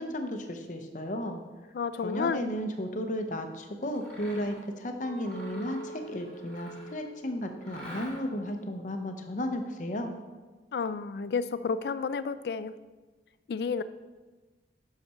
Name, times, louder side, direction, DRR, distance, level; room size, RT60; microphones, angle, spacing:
voice 1, 0.0-1.4 2.0-10.1, left 1 dB, 45° left, 5 dB, 0.7 m, -34 dB
voice 2, 1.7-2.4 10.7-12.8 13.5-13.8, left 5 dB, 60° left, 15 dB, 0.3 m, -31 dB
Mechanisms, 3.9-4.7 5.2-7.1 7.6-8.5, equal, 5° left, 1.5 m, -47 dB
Chink clink, 5.0-9.3, right 3 dB, 55° right, 2.4 m, -47 dB
5.8 x 5.7 x 5.6 m, 1.3 s
head